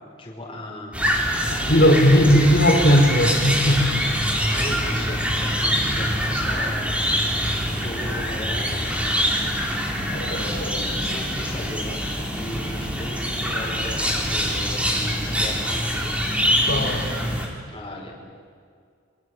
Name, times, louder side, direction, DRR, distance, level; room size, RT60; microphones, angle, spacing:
voice 1, 0.0-2.4 4.4-8.8 10.1-12.0 12.3-16.1 17.7-18.1, left 1 dB, 25° left, -2 dB, 5.1 m, -37 dB
sound 1, 0.9-17.5, equal, 5° right, 3.9 m, -24 dB
voice 2, 1.7-4.1 10.0-10.8 16.6-17.2, equal, 50° left, 0 dB, 4.9 m, -18 dB
28.0 x 25.0 x 8.0 m, 2.2 s
head